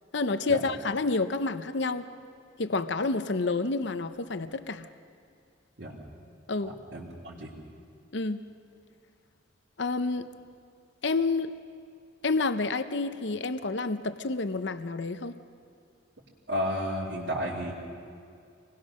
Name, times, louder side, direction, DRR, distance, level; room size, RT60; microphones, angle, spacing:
voice 1, 0.1-2.1 2.6-4.9 6.5-6.8 8.1-8.4 9.8-10.3 11.0-11.5 12.2-15.3, left 3 dB, 60° left, 11 dB, 0.8 m, -29 dB
voice 2, 6.9-7.5 16.5-17.7, equal, 60° right, -7 dB, 2.9 m, -32 dB
26.0 x 20.0 x 6.4 m, 2.4 s
head